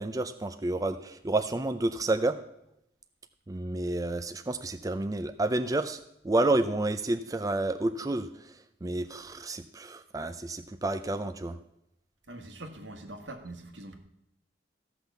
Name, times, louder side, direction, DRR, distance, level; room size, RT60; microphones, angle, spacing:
voice 1, 0.0-2.4 3.5-6.0 6.2-11.6, right 2 dB, 20° right, 9 dB, 0.5 m, -30 dB
voice 2, 12.3-14.0, right 1 dB, 80° right, 6 dB, 1.8 m, -43 dB
14.5 x 6.0 x 7.0 m, 0.80 s
head